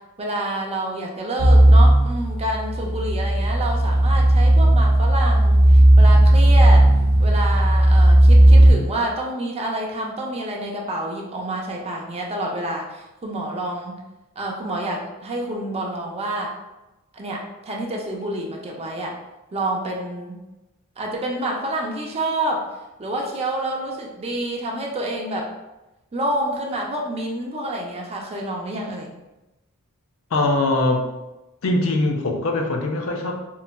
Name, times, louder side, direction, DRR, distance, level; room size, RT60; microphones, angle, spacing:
voice 1, 0.2-6.9 7.2-14.0 14.4-16.5 17.1-19.1 19.5-20.4 21.0-22.6 23.0-25.5 26.1-29.1, right 1 dB, 30° right, -1 dB, 0.4 m, -28 dB
sound 1, 1.4-8.7, right 1 dB, 85° right, 0.6 m, -14 dB
voice 2, 30.3-31.0 31.6-33.4, left 2 dB, 65° left, 3 dB, 0.4 m, -22 dB
3.8 x 2.1 x 2.2 m, 1.0 s
head